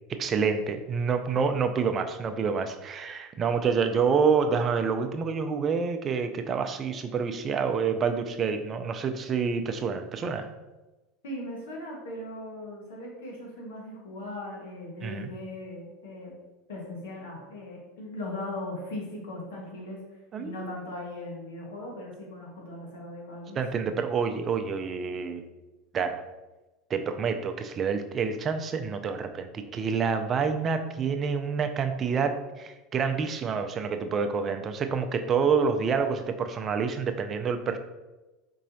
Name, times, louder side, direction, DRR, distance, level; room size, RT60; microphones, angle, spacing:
voice 1, 0.2-10.5 15.0-15.3 20.3-20.8 23.6-25.4 25.9-26.2 26.9-37.8, right 5 dB, 35° right, 7 dB, 0.5 m, -28 dB
voice 2, 11.2-16.3 16.7-23.6, left 1 dB, 85° left, -2 dB, 1.3 m, -39 dB
4.6 x 4.2 x 2.7 m, 1.1 s
hypercardioid pair, 95°, 0 cm